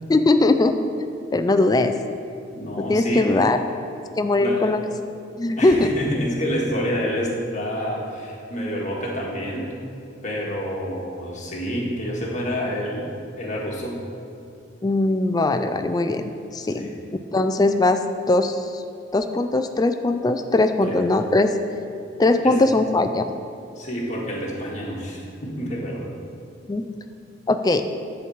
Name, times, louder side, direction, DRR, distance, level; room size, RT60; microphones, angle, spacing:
voice 1, 0.1-0.9 1.3-1.9 2.8-3.6 4.2-4.8 5.4-5.9 14.8-16.9 17.3-18.8 19.1-21.5 22.2-23.2 26.7-26.8 27.5-27.9, left 2 dB, 20° left, 8 dB, 0.3 m, -20 dB
voice 2, 2.5-3.4 4.4-4.8 5.6-9.7 10.2-13.1 13.4-14.0 16.8-17.0 20.8-21.0 22.4-22.6 23.8-26.1, equal, 40° left, -3 dB, 1.8 m, -28 dB
10.5 x 4.5 x 7.2 m, 2.5 s
head